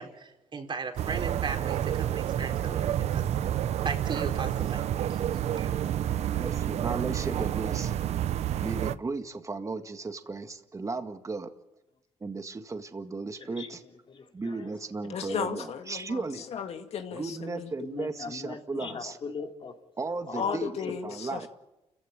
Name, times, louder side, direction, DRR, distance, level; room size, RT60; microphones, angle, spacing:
voice 1, 0.0-3.2 3.8-4.8 5.1-5.2 5.5-5.7, right 5 dB, 45° right, 4.1 m, -36 dB
sound 1, 1.0-9.0, right 11 dB, 70° right, 0.8 m, -29 dB
voice 2, 6.3-8.0 8.6-11.5 12.2-13.8 14.3-16.4 17.2-19.2 20.0-20.7 21.0-21.5, right 3 dB, 30° right, 1.8 m, -35 dB
voice 3, 13.3-14.8 15.4-15.5 16.1-16.6 17.8-19.8 20.3-20.6 20.8-21.5, left 5 dB, 50° left, 3.3 m, -41 dB
voice 4, 15.0-17.7 18.8-19.0 20.4-21.5, left 7 dB, 65° left, 2.2 m, -35 dB
29.5 x 15.5 x 8.9 m
cardioid pair, 80°, 12 cm